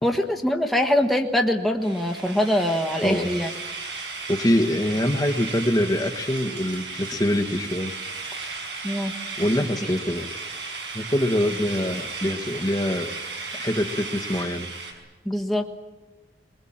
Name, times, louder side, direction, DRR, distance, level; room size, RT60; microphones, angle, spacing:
voice 1, 0.0-3.5 8.8-9.1 15.2-15.8, left 1 dB, ahead, 2 dB, 1.4 m, -23 dB
sound 1, 1.8-14.9, right 4 dB, 85° right, 5.4 m, -35 dB
voice 2, 4.3-7.9 9.4-10.3 10.9-13.1 13.5-14.7, left 1 dB, 20° left, 3 dB, 1.4 m, -24 dB
22.5 x 21.5 x 8.8 m, 1.2 s
head